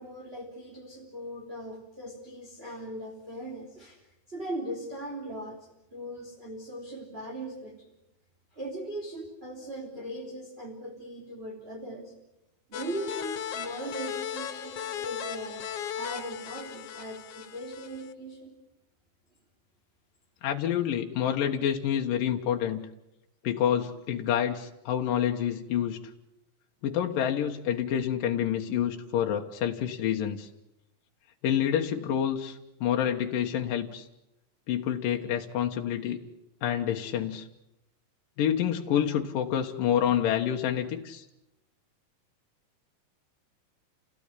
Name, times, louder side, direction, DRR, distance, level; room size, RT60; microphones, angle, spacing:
voice 1, 0.0-4.0 4.3-7.9 8.5-12.1 12.7-15.6 15.9-18.5, right 1 dB, 15° right, -1 dB, 3.4 m, -39 dB
skip synth, 12.7-18.1, left 9 dB, 60° left, 1.7 m, -37 dB
voice 2, 20.4-22.8 23.4-26.0 26.8-30.5 31.4-34.1 34.7-36.2 36.6-37.5 38.4-41.2, left 9 dB, 80° left, 2 dB, 3.0 m, -28 dB
29.5 x 17.0 x 9.8 m, 0.89 s
omnidirectional pair, 3.8 m